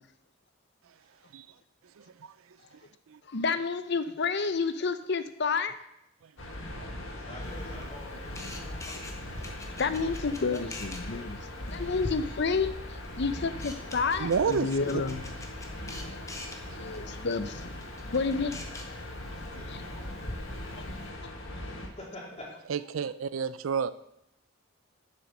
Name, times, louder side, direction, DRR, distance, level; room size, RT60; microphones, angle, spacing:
voice 1, 2.0-2.3 3.1-3.2 6.8-6.9 14.2-14.7 19.0-19.6 21.7-21.8 22.7-23.9, right 6 dB, 80° right, 0.4 m, -31 dB
voice 2, 3.3-5.8 9.7-12.7 13.2-15.2 16.8-17.7 18.1-18.5 19.7-19.8 20.8-20.9, left 4 dB, 55° left, 0.6 m, -30 dB
sound 1, 6.4-21.9, left 1 dB, 75° left, 1.5 m, -40 dB
voice 3, 6.9-8.6 8.9-9.4 18.4-18.5 19.5-19.7 22.0-22.5, left 1 dB, 30° left, 3.1 m, -46 dB
Camera, 7.4-21.1, left 1 dB, 15° left, 1.0 m, -45 dB
7.6 x 7.0 x 6.0 m
head